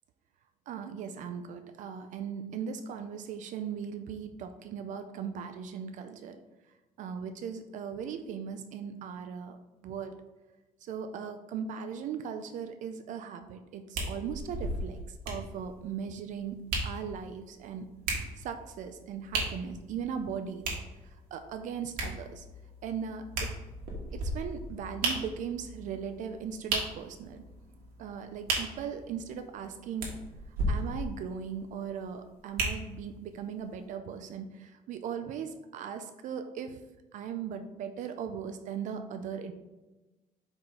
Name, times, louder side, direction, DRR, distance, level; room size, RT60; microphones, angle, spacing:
voice 1, 0.7-6.4 7.0-9.6 9.8-10.2 10.8-17.9 18.4-20.8 21.3-22.5 22.8-23.5 24.1-27.4 28.0-30.1 30.7-36.8 37.1-39.5, right 7 dB, 60° right, 8 dB, 0.4 m, -38 dB
sound 1, 13.9-33.2 33.8-33.9, right 2 dB, 80° right, 1.6 m, -36 dB
4.8 x 4.1 x 4.7 m, 1.1 s
cardioid pair, 165°, 15 cm